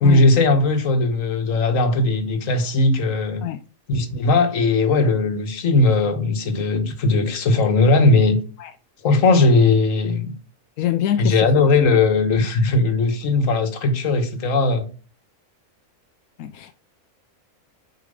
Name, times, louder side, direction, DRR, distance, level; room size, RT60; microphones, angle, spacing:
voice 1, 0.0-3.4 3.9-8.4 9.0-10.3 11.2-14.9, left 3 dB, 70° left, 1.5 m, -18 dB
voice 2, 10.8-11.9 16.4-16.7, left 11 dB, 85° left, 1.0 m, -25 dB
6.6 x 4.9 x 5.2 m
omnidirectional pair, 1.4 m